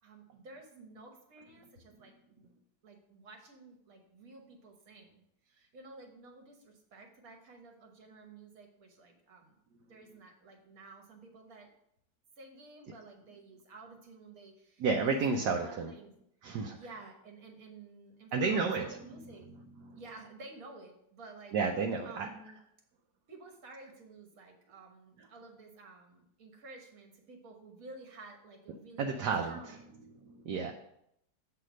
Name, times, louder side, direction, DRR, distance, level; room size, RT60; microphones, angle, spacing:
voice 1, 0.0-2.5 2.8-9.6 9.9-11.7 12.4-16.1 16.7-19.6 19.9-21.6 22.0-22.6 23.3-29.9, right 3 dB, 50° right, 3 dB, 1.5 m, -52 dB
voice 2, 14.8-15.9 16.4-16.8 18.3-19.0 19.8-20.0 21.5-22.3 29.0-29.6 30.3-30.7, right 4 dB, 70° right, 2 dB, 1.1 m, -31 dB
7.7 x 3.4 x 6.2 m, 0.76 s
omnidirectional pair, 2.1 m